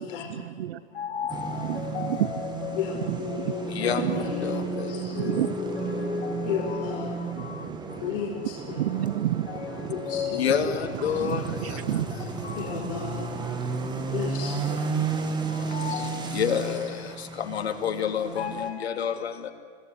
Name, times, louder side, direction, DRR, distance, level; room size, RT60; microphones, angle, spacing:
voice 1, 0.3-0.8 1.7-2.3 3.0-3.5 4.0-4.2 5.1-5.5 7.4-7.8 8.7-9.5 9.8-9.9 11.2-12.1, right 13 dB, 70° right, 22 dB, 0.8 m, -29 dB
voice 2, 1.0-7.0 7.4-7.6 9.5-9.7 10.0-11.4 11.7-11.8 12.4-12.6 15.7-17.1 17.4-19.5, left 7 dB, 80° left, 5 dB, 3.2 m, -30 dB
sound 1, 1.3-18.7, right 5 dB, 15° right, 2.2 m, -33 dB
voice 3, 2.7-5.2 6.4-7.1 8.0-8.8 9.9-11.2 12.5-13.4 14.1-14.8 15.6-15.7 17.8-18.5, left 6 dB, 60° left, -2 dB, 5.3 m, -35 dB
26.0 x 18.0 x 9.7 m, 2.1 s
hypercardioid pair, 150°, 31 cm